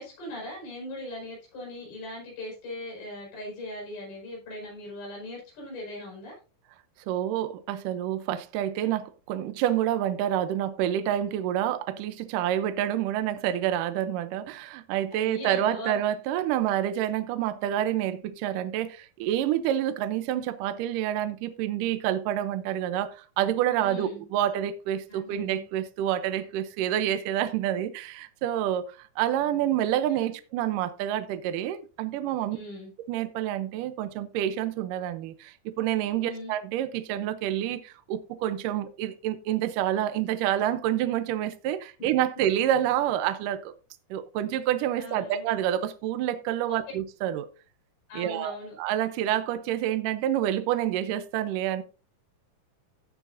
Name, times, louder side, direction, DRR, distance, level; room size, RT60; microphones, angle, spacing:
voice 1, 0.0-6.4 15.1-16.0 23.8-24.2 25.1-25.6 30.1-30.3 32.5-32.9 36.2-36.5 45.0-45.5 46.7-46.8 48.1-48.8, left 1 dB, 85° left, 7.2 m, -40 dB
voice 2, 7.1-32.6 33.1-43.7 44.1-47.5 48.1-51.8, right 11 dB, 75° right, 2.2 m, -28 dB
17.0 x 6.8 x 2.6 m
omnidirectional pair, 4.3 m